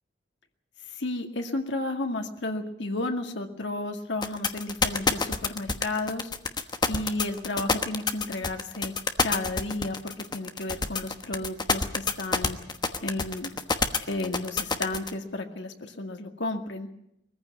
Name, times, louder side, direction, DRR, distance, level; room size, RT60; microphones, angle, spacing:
voice 1, 0.9-6.3 6.9-8.9 9.2-12.6 13.0-13.5 14.0-16.9, left 2 dB, 85° left, 4 dB, 2.1 m, -32 dB
sound 1, 4.2-15.1, left 4 dB, 25° left, 1.2 m, -26 dB
21.5 x 15.0 x 9.6 m, 0.78 s
head